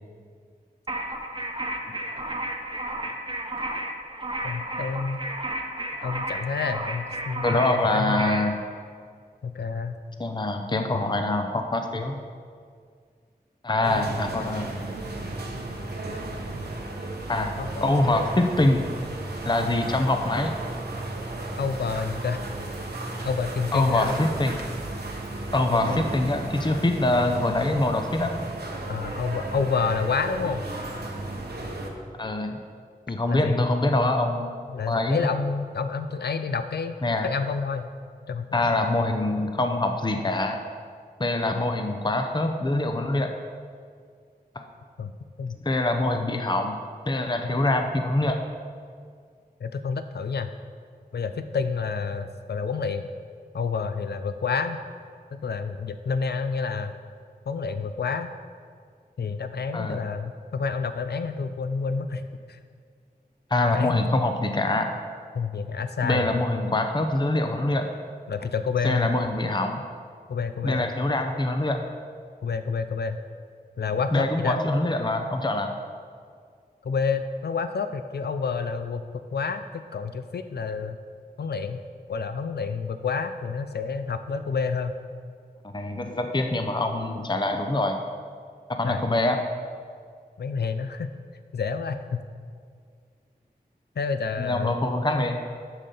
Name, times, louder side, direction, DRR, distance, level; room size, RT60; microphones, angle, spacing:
sound 1, 0.9-8.5, right 1 dB, 30° right, 0.9 m, -32 dB
voice 1, 4.4-5.2 6.0-8.4 9.4-9.9 17.6-18.3 21.6-22.5 23.2-24.2 25.7-26.0 28.9-30.6 33.3-33.7 34.7-36.9 37.2-37.9 38.3-38.7 45.0-45.1 45.4-45.6 49.6-50.5 51.1-53.1 53.5-54.8 55.3-57.0 57.5-58.3 59.2-62.6 63.7-64.0 65.3-66.3 68.3-69.1 70.3-70.9 72.4-73.2 73.8-74.6 76.8-79.6 79.9-81.0 81.4-81.8 82.1-84.9 88.8-89.1 90.4-91.1 91.5-92.2 94.0-94.8, left 5 dB, 85° left, 10 dB, 0.4 m, -29 dB
voice 2, 7.4-8.6 10.2-12.2 13.6-14.7 16.0-16.1 17.3-17.5 17.8-18.8 19.4-20.5 23.7-24.6 25.5-28.3 32.2-32.6 33.1-34.5 34.9-35.3 37.0-37.3 38.5-40.6 41.2-43.3 44.5-44.6 45.6-46.8 47.1-48.4 59.7-60.0 63.5-64.9 66.0-67.9 68.8-69.8 70.6-71.8 74.1-75.7 85.6-88.0 88.7-89.4 94.4-95.4, left 2 dB, 30° left, 5 dB, 0.7 m, -24 dB
sound 2, 13.8-31.9, right 2 dB, 80° right, 1.1 m, -34 dB
10.5 x 6.7 x 3.9 m, 2.1 s
wide cardioid pair, 50°, 17 cm